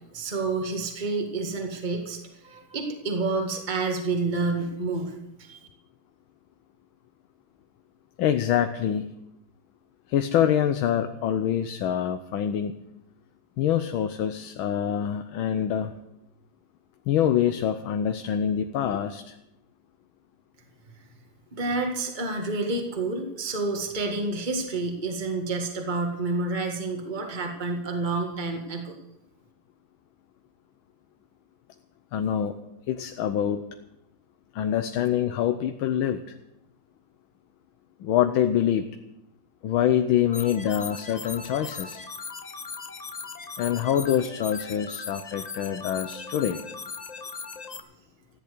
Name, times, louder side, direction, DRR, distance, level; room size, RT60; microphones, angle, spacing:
voice 1, 0.1-5.6 21.5-29.0, right 3 dB, 25° right, 2 dB, 1.9 m, -29 dB
voice 2, 8.2-9.1 10.1-12.7 13.6-15.9 17.1-19.3 32.1-32.6 32.9-33.6 34.5-36.3 38.0-38.9 39.6-42.0 43.6-46.6, left 10 dB, 80° left, 7 dB, 1.6 m, -25 dB
sound 1, 40.3-47.8, left 5 dB, 60° left, 0.4 m, -39 dB
15.0 x 10.5 x 6.8 m, 0.86 s
omnidirectional pair, 2.2 m